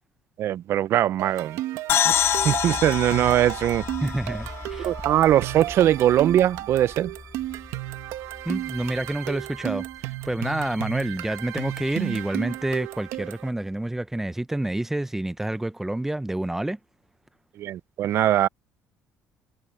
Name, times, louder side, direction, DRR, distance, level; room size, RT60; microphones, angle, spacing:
voice 1, 0.4-1.6 2.0-3.9 4.9-7.1 17.6-18.5, right 12 dB, 60° right, 0.6 m, -21 dB
sound 1, 1.2-13.5, right 16 dB, 80° right, 1.3 m, -34 dB
sound 2, 1.9-5.5, left 10 dB, 55° left, 1.0 m, -26 dB
sound 3, 2.1-13.5 13.8-13.9, left 2 dB, 15° left, 1.6 m, -43 dB
voice 2, 4.0-4.9 8.5-16.8, right 1 dB, 5° right, 0.6 m, -28 dB
cardioid pair, 115°, 5 cm